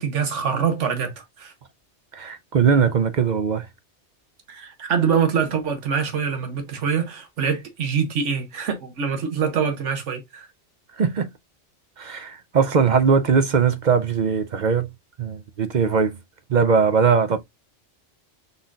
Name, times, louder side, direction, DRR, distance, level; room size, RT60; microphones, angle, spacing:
voice 1, 0.0-1.5 4.5-10.5, right 6 dB, 90° right, 1.4 m, -24 dB
voice 2, 2.1-3.7 11.0-11.3 12.0-14.9 15.2-16.2 16.5-17.4, right 6 dB, 55° right, 0.5 m, -20 dB
5.5 x 4.0 x 2.3 m
omnidirectional pair, 1.2 m